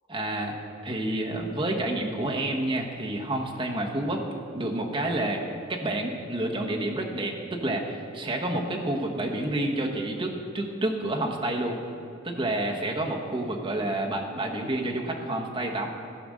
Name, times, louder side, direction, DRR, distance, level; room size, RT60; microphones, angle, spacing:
voice 1, 0.1-0.6 0.8-4.2 4.5-5.4 5.7-11.8 12.2-15.9, right 1 dB, 25° right, 0 dB, 1.1 m, -29 dB
14.0 x 5.1 x 6.3 m, 2.5 s
head